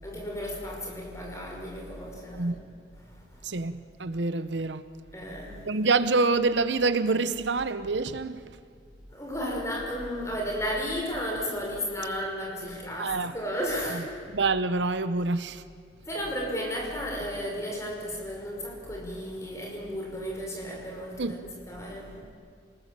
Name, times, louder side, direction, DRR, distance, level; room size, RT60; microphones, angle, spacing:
voice 1, 0.0-2.6 3.0-3.6 5.1-5.7 9.1-14.1 16.0-22.3, equal, 15° left, 5.3 m, -34 dB
voice 2, 3.4-4.8 5.6-8.4 13.0-13.3 13.9-14.0 14.3-15.6 21.2-21.4, right 3 dB, 75° right, 0.8 m, -26 dB
27.5 x 19.5 x 7.5 m
head